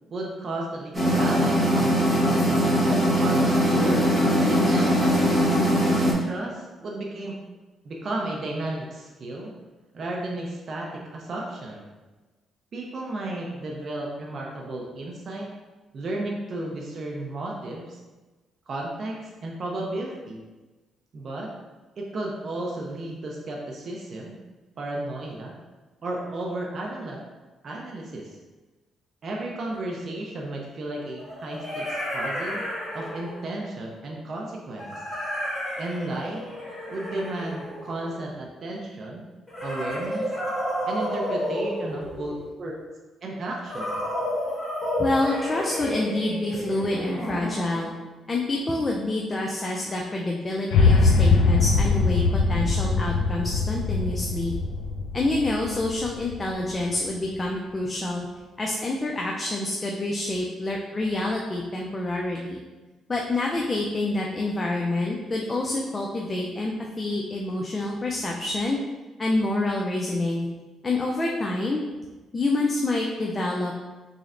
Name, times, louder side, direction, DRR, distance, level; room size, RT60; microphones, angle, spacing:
voice 1, 0.1-5.3 6.2-7.4 7.8-9.5 9.9-11.8 12.7-15.5 15.9-18.0 18.7-20.4 21.1-21.5 22.0-24.4 24.8-25.5 26.0-27.2 27.6-28.4 29.2-32.6 32.9-34.9 35.8-36.4 36.9-39.2 39.6-40.3 40.9-42.7 43.2-44.0, right 2 dB, 50° right, -2 dB, 0.5 m, -33 dB
sound 1, 0.9-6.1, equal, 15° right, 1.1 m, -21 dB
sound 2, 29.7-29.8 31.2-33.5 34.8-38.3 39.5-42.5 43.7-48.0, equal, 10° left, 1.2 m, -31 dB
voice 2, 45.0-47.9 48.3-54.5 55.1-58.2 58.6-62.6 63.1-68.8 69.2-70.5 70.8-71.8 72.3-73.8, left 2 dB, 25° left, -1 dB, 0.4 m, -27 dB
sound 3, 50.7-56.9, left 4 dB, 90° left, 0.4 m, -22 dB
3.8 x 3.2 x 2.5 m, 1.2 s
cardioid pair, 90°, 0 cm